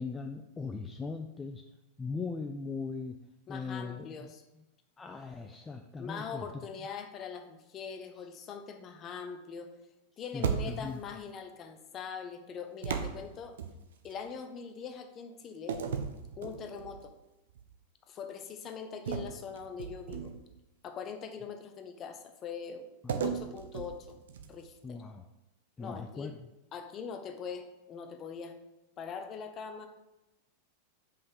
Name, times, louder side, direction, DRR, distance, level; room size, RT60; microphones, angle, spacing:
voice 1, 0.0-1.6 2.0-3.2 3.5-4.6 5.0-6.6 8.2-8.3 10.3-11.0 23.0-23.2 24.8-25.3 25.8-26.4, left 4 dB, 15° left, 5 dB, 0.4 m, -39 dB
voice 2, 3.5-4.4 6.0-9.7 10.2-13.6 14.0-15.8 16.4-17.1 18.1-20.3 20.8-22.9 23.2-24.1 24.5-25.0 25.8-26.3 26.7-28.6 29.0-29.9, left 6 dB, 30° left, 7 dB, 0.9 m, -42 dB
sound 1, 10.4-11.1 12.8-14.2 15.7-17.0 17.5-17.7 19.1-20.6 23.1-24.7, right 6 dB, 60° right, 0.8 m, -36 dB
5.4 x 5.4 x 5.9 m, 0.97 s
figure-of-eight pair, 90°, 0 cm